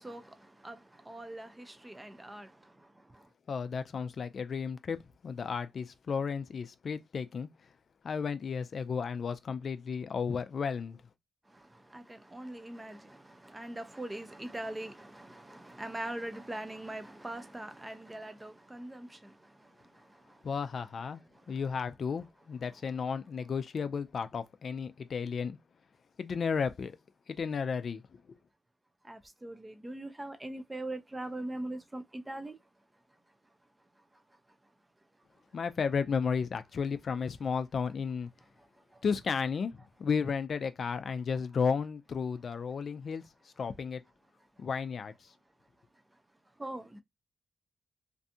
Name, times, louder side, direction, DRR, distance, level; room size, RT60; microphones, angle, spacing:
voice 1, 0.0-3.3 11.5-20.5 21.3-21.6 29.0-32.6 34.0-34.2 38.6-39.0 44.6-44.7 46.6-47.0, right 1 dB, 15° right, 0.5 m, -42 dB
voice 2, 3.5-5.0 5.2-7.5 8.0-11.0 20.4-21.2 21.5-25.6 26.2-27.0 27.3-28.4 35.5-38.3 39.0-44.0 44.6-45.3, left 6 dB, 60° left, 0.3 m, -33 dB
2.6 x 2.3 x 2.6 m
cardioid pair, 80°, 0 cm